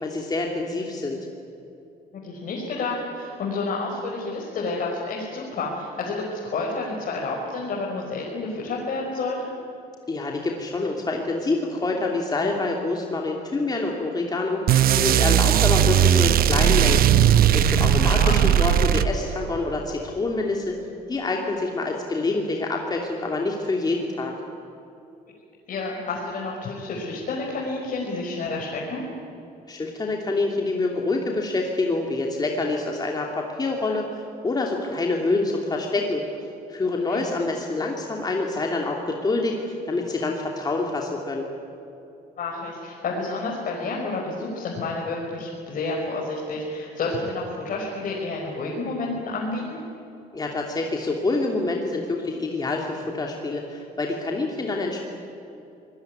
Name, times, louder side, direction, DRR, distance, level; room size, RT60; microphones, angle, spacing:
voice 1, 0.0-1.2 10.1-17.0 17.5-20.8 21.1-24.3 29.7-36.2 36.7-39.6 39.9-41.5 50.3-55.0, left 3 dB, 25° left, 0 dB, 2.8 m, -26 dB
voice 2, 2.2-9.5 18.1-18.4 25.7-29.0 37.1-37.2 42.4-49.8, left 3 dB, 55° left, -3 dB, 5.2 m, -30 dB
sound 1, 14.7-19.5, right 10 dB, 60° right, 0.9 m, -18 dB
24.5 x 20.0 x 9.6 m, 2.8 s
cardioid pair, 110°, 17 cm